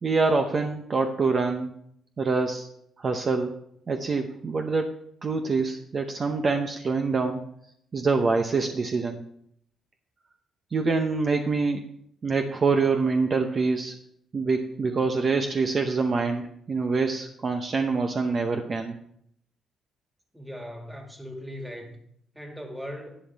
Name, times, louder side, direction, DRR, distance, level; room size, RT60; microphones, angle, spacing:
voice 1, 0.0-1.7 2.2-2.7 3.0-3.6 3.9-7.4 7.9-9.2 10.7-11.9 12.2-14.0 14.3-19.0, right 4 dB, 40° right, 5 dB, 0.7 m, -25 dB
voice 2, 20.3-22.0 22.3-23.2, equal, 5° right, 3 dB, 2.0 m, -39 dB
11.5 x 8.6 x 3.4 m, 0.70 s
cardioid pair, 90°, 0 cm